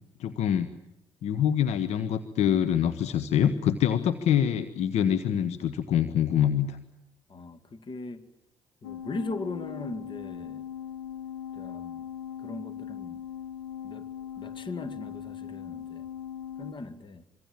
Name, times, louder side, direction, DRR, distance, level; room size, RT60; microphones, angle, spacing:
voice 1, 0.2-0.7 1.2-6.8, left 9 dB, 65° left, 12 dB, 1.2 m, -25 dB
voice 2, 7.3-8.3 8.8-10.6 11.5-12.1 12.4-13.2 13.8-14.1 14.4-16.1 16.6-17.2, left 3 dB, 40° left, 13 dB, 2.4 m, -39 dB
sound 1, 8.8-16.7, left 9 dB, 90° left, 3.7 m, -39 dB
25.5 x 24.0 x 9.0 m, 0.80 s
hypercardioid pair, 45°, 12 cm